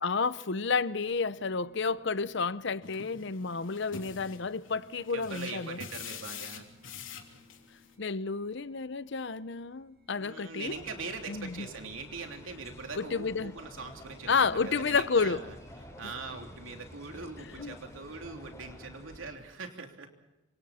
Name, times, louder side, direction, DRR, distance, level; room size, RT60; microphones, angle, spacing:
voice 1, 0.0-5.8 8.0-10.8 11.3-11.7 13.0-13.5 14.3-15.4 17.6-17.8, left 4 dB, 60° left, 0.7 m, -30 dB
sound 1, 0.6-19.5, left 1 dB, 50° right, 3.1 m, -63 dB
sound 2, 2.8-7.9, left 7 dB, 80° left, 3.2 m, -46 dB
voice 2, 5.1-6.7 10.2-15.5 16.0-20.1, right 4 dB, 85° right, 3.3 m, -42 dB
sound 3, 10.7-19.3, equal, 15° left, 3.9 m, -49 dB
27.5 x 25.5 x 4.3 m
head